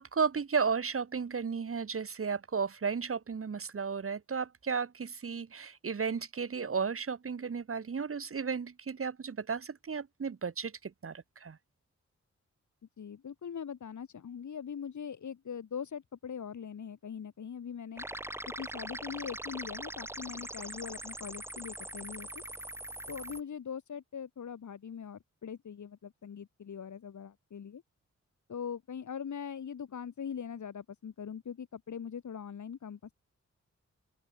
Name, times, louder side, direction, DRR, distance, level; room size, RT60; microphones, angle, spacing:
voice 1, 0.0-11.6, right 5 dB, 50° right, 3.6 m, -34 dB
voice 2, 13.0-18.0 18.6-22.4 23.1-27.8 28.5-33.1, left 7 dB, 80° left, 7.1 m, -41 dB
sound 1, 18.0-23.4, right 1 dB, 10° right, 2.2 m, -42 dB
open air
wide cardioid pair, 155°, 29 cm